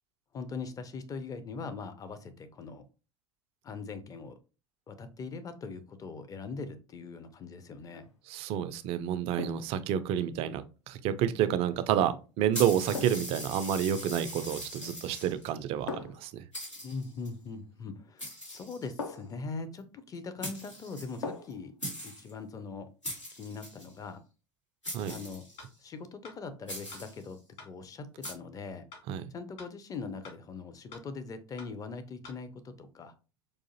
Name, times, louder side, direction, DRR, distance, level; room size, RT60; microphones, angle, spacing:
voice 1, 0.3-2.8 3.6-4.4 4.9-8.1 11.8-11.9 16.7-21.7 22.0-22.9 23.3-24.2 25.1-25.4 25.8-28.8 29.3-33.1, left 4 dB, 25° left, 0.5 m, -41 dB
sound 1, 7.8-8.1 9.4-9.8 11.9-12.1 12.9-13.4 14.7-15.1 15.9-16.3 18.0-18.1 19.0-19.4 21.2-21.7 22.0-22.1, left 4 dB, 70° left, 0.8 m, -41 dB
voice 2, 8.3-16.4 24.9-25.1 29.1-29.2, right 10 dB, 40° right, 0.4 m, -29 dB
sound 2, 12.5-15.5 16.1-16.2 16.5-17.3 18.2-19.2 20.1-20.2 20.4-21.5 21.8-22.3 23.0-23.9 24.8-25.7 26.7-27.3 28.2-28.3, equal, 85° left, 1.6 m, -41 dB
sound 3, 25.6-25.7 26.2-26.4 26.9-27.0 27.6-27.7 28.2-28.4 28.9-29.0 29.6-29.7 30.2-30.4 30.9-31.0 31.6-31.7 32.2-32.4, left 4 dB, 50° left, 1.9 m, -48 dB
4.7 x 2.5 x 2.7 m
figure-of-eight pair, 75°, 15 cm